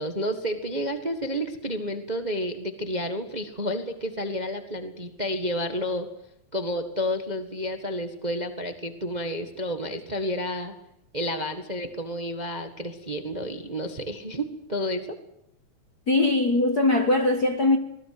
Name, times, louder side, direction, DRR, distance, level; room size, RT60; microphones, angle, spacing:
voice 1, 0.0-6.1 6.5-10.7 11.1-15.0, equal, 20° right, 1.1 m, -30 dB
voice 2, 16.1-17.8, left 2 dB, 45° left, 1.3 m, -21 dB
25.5 x 19.0 x 7.9 m
omnidirectional pair, 3.5 m